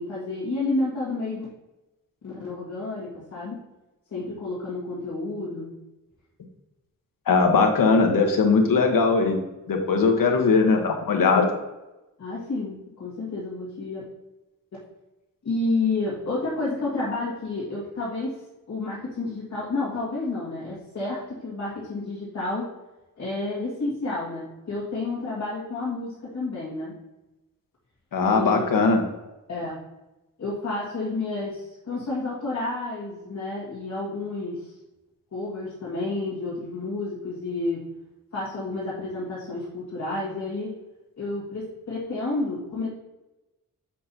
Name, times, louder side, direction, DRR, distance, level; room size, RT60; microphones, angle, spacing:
voice 1, 0.0-1.5 2.2-3.6 4.1-5.7 10.1-10.2 12.2-14.0 15.4-18.4 18.7-22.7 23.2-27.0 28.2-28.6 29.5-29.8 30.4-34.7 35.3-37.8 38.3-40.7 41.2-42.9, left 2 dB, 55° left, -9 dB, 2.1 m, -30 dB
voice 2, 7.3-9.4 9.7-11.5 28.1-29.0, left 4 dB, 75° left, 3 dB, 1.2 m, -20 dB
7.5 x 5.8 x 2.8 m, 1.0 s
cardioid pair, 95°, 33 cm